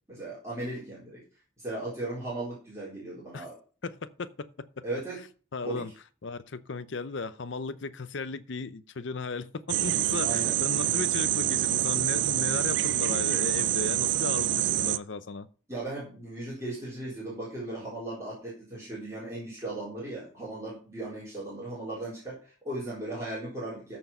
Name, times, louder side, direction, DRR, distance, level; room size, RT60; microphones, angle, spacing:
voice 1, 0.1-1.2 1.6-3.6 4.8-5.2 5.6-5.8 10.2-10.6 15.7-24.0, right 2 dB, 15° right, 4.1 m, -37 dB
voice 2, 3.8-4.8 5.5-5.9 6.2-15.5, left 4 dB, 60° left, 0.6 m, -36 dB
sound 1, 9.7-15.0, right 13 dB, 60° right, 0.4 m, -26 dB
13.5 x 4.6 x 5.5 m
head